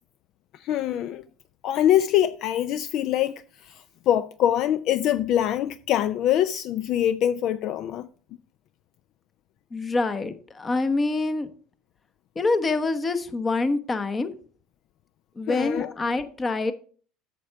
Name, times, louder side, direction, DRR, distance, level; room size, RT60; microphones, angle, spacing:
voice 1, 0.6-1.2 1.6-3.3 3.6-8.1 15.5-15.9, left 11 dB, 60° left, 0.4 m, -24 dB
voice 2, 9.7-11.5 12.3-14.3 15.4-16.7, left 3 dB, 25° left, 1.0 m, -26 dB
8.4 x 6.6 x 4.6 m
hypercardioid pair, 85°, 0 cm